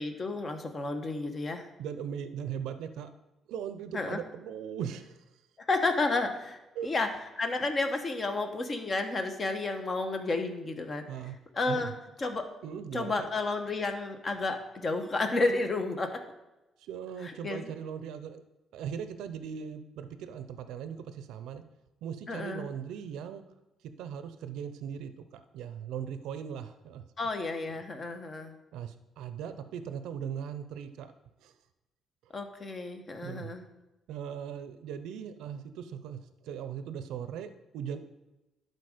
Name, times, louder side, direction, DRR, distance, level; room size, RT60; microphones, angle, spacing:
voice 1, 0.0-1.7 3.9-4.2 5.6-7.1 7.4-11.0 11.5-11.9 12.2-12.5 12.9-16.2 17.2-17.6 22.3-22.7 27.2-28.5 32.3-33.6, left 3 dB, 40° left, 6 dB, 1.1 m, -31 dB
voice 2, 1.8-3.1 3.5-5.2 6.8-6.9 11.1-11.4 11.7-11.9 12.6-13.3 16.8-18.4 18.7-21.6 22.0-23.4 24.0-27.0 27.7-27.8 28.7-31.1 31.4-31.5 33.2-33.5 34.1-38.0, right 8 dB, 90° right, 10 dB, 0.5 m, -39 dB
11.0 x 4.1 x 5.0 m, 1.0 s
cardioid pair, 90°, 0 cm